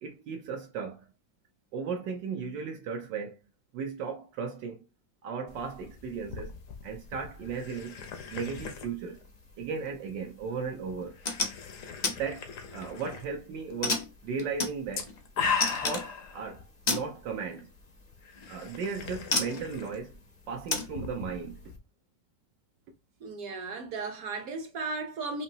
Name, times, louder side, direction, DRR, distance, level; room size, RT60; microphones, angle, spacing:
voice 1, 0.0-1.0 1.7-3.3 3.7-4.8 5.2-6.5 6.8-8.0 8.3-9.2 9.6-11.2 12.0-12.5 12.7-15.1 15.8-17.7 18.5-20.2 20.5-21.7, right 5 dB, 80° right, 1.4 m, -36 dB
sound 1, 5.5-21.8, left 6 dB, 60° left, 0.9 m, -40 dB
sound 2, 11.0-11.5 12.0-12.2 12.6-13.1 13.8-15.2 15.6-16.1 16.9-17.1 18.4-18.5 19.3-19.6 20.7-20.9, left 3 dB, 85° left, 0.3 m, -30 dB
voice 2, 23.2-25.4, right 3 dB, 60° right, 1.2 m, -35 dB
5.2 x 2.7 x 2.7 m
omnidirectional pair, 2.0 m